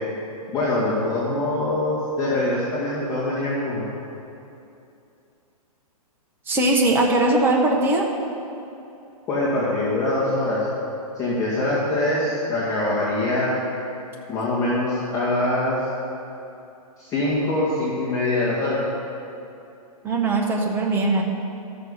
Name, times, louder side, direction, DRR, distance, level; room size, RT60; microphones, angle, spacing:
voice 1, 0.5-3.9 9.3-10.6 11.2-13.6 14.3-15.8 17.0-18.8, left 2 dB, 15° left, -10 dB, 2.2 m, -23 dB
voice 2, 6.5-8.1 20.0-21.2, right 2 dB, 10° right, 0 dB, 1.1 m, -20 dB
12.5 x 6.8 x 5.6 m, 2.7 s
hypercardioid pair, 155°, 19 cm